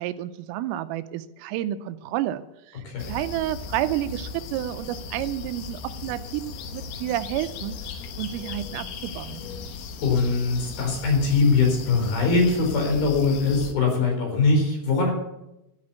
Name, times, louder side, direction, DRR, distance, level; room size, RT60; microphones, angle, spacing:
voice 1, 0.0-9.4, right 13 dB, 85° right, 12 dB, 3.3 m, -30 dB
voice 2, 2.8-3.2 10.0-15.1, left 4 dB, 50° left, 1 dB, 5.5 m, -22 dB
sound 1, 3.0-13.7, left 5 dB, 75° left, 2.3 m, -37 dB
13.5 x 8.6 x 8.2 m, 0.88 s
omnidirectional pair, 5.9 m